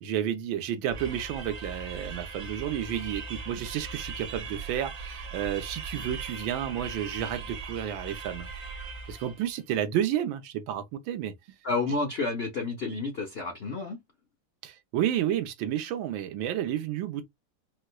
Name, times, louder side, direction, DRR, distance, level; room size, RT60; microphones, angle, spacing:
voice 1, 0.0-8.5 9.1-11.3 14.6-17.2, right 10 dB, 80° right, 1.5 m, -31 dB
sound 1, 0.9-9.5, right 4 dB, 50° right, 0.9 m, -39 dB
voice 2, 11.6-14.0, left 3 dB, 65° left, 0.6 m, -30 dB
4.7 x 2.1 x 2.2 m
omnidirectional pair, 2.2 m